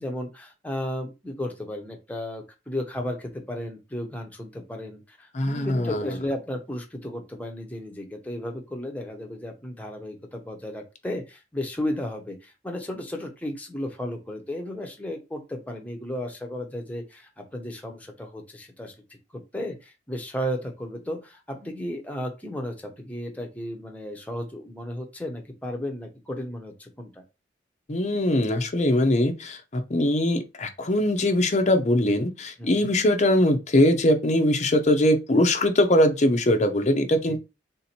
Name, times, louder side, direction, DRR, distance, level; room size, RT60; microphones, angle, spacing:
voice 1, 0.0-27.2 32.6-32.9 37.3-37.4, left 1 dB, 10° left, 0.8 m, -34 dB
voice 2, 5.3-6.2 27.9-37.4, left 1 dB, 40° left, 0.6 m, -22 dB
3.7 x 2.8 x 4.3 m
head